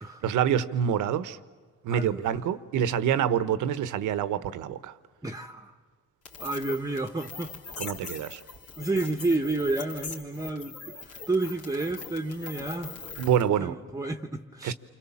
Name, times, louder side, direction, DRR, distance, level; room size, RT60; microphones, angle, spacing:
voice 1, 0.2-1.4 1.8-4.9 7.8-8.4 13.2-13.7 14.6-14.7, right 9 dB, 85° right, 1.1 m, -26 dB
voice 2, 1.9-2.4 5.2-5.7 6.4-7.5 8.0-8.1 8.8-13.0 13.6-14.7, right 2 dB, 10° right, 1.1 m, -31 dB
sound 1, 6.2-13.5, left 4 dB, 85° left, 3.6 m, -42 dB
28.5 x 25.5 x 7.2 m
cardioid pair, 90°, 30 cm